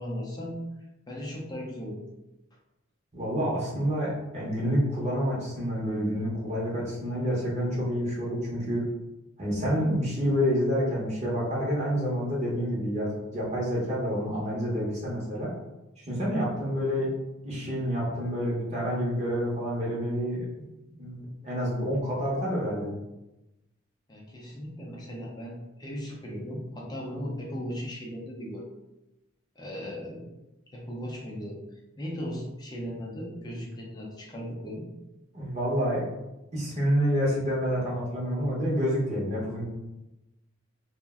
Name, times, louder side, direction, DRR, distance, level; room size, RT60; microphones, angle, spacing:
voice 1, 0.0-2.1 24.1-28.7 29.6-30.3 30.7-31.6 32.0-34.9, equal, 20° left, -2 dB, 0.5 m, -37 dB
voice 2, 3.1-8.8 9.4-15.5 16.0-17.1 17.4-20.6 21.0-22.9 35.3-36.0 36.5-39.6, equal, 30° right, -6 dB, 0.7 m, -28 dB
2.5 x 2.1 x 3.4 m, 0.97 s
head